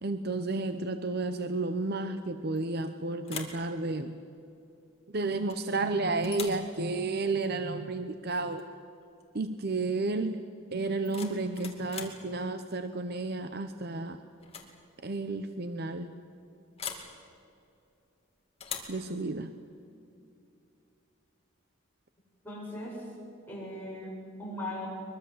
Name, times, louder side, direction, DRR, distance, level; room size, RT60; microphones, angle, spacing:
voice 1, 0.0-4.2 5.1-8.6 9.3-10.4 10.7-14.2 15.0-16.1 18.9-19.5, right 3 dB, 50° right, 9 dB, 0.8 m, -32 dB
sound 1, 2.5-2.9 3.2-3.6 5.5-5.8 6.2-6.7 8.5-8.7 9.0-9.4 10.8-12.2 13.7-14.0 14.4-14.7 15.0-15.1 16.8-17.1 18.6-19.0, left 7 dB, 30° left, 2.5 m, -41 dB
voice 2, 22.4-23.1 23.5-24.9, left 1 dB, 10° left, -4 dB, 7.8 m, -39 dB
23.0 x 22.5 x 7.9 m, 2.6 s
head